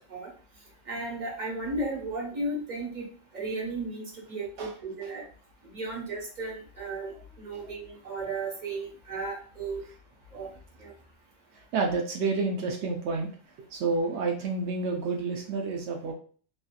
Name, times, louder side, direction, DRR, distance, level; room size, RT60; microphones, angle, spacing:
voice 1, 0.9-3.0 3.3-5.2 5.7-9.8 10.3-10.5 10.8-10.9, right 2 dB, 45° right, -3 dB, 1.3 m, -34 dB
voice 2, 11.7-13.3 13.7-16.1, right 4 dB, 85° right, 1 dB, 0.9 m, -29 dB
3.1 x 2.7 x 2.3 m, 0.43 s
omnidirectional pair, 1.1 m